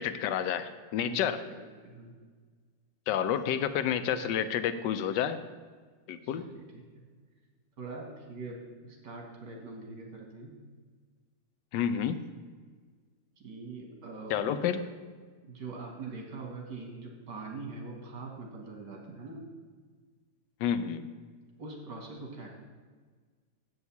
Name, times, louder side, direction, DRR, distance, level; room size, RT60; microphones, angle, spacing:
voice 1, 0.0-1.4 3.1-5.4 6.1-6.5 11.7-12.2 14.3-14.8 20.6-21.0, left 9 dB, 85° left, 11 dB, 1.3 m, -29 dB
voice 2, 1.8-2.1 6.2-7.0 7.8-10.6 13.4-14.4 15.4-19.5 21.6-22.5, right 3 dB, 80° right, 1 dB, 2.3 m, -43 dB
7.9 x 5.5 x 7.0 m, 1.5 s
omnidirectional pair, 1.8 m